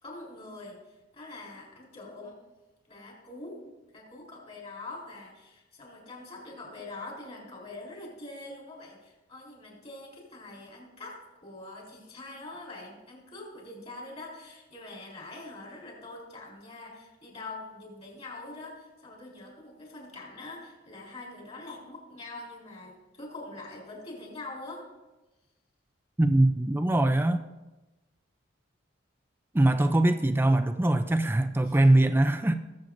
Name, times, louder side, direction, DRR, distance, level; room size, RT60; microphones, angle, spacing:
voice 1, 0.0-0.8 1.1-2.4 2.9-3.7 3.9-24.9 31.6-31.8, left 2 dB, 35° left, -3 dB, 3.6 m, -44 dB
voice 2, 26.2-27.4 29.5-32.5, right 1 dB, 10° right, 9 dB, 0.4 m, -22 dB
20.5 x 7.6 x 2.6 m, 1.1 s
head